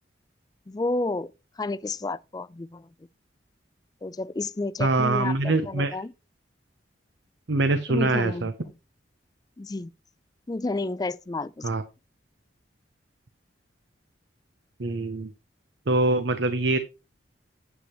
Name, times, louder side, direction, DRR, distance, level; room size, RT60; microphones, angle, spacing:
voice 1, 0.7-2.9 4.0-6.1 7.9-8.5 9.6-9.9 10.5-11.7, left 2 dB, 20° left, 0.4 m, -31 dB
voice 2, 4.8-6.0 7.5-8.5 11.6-11.8 14.8-15.3 15.9-16.8, right 2 dB, 75° right, 0.8 m, -24 dB
9.4 x 7.8 x 3.0 m
head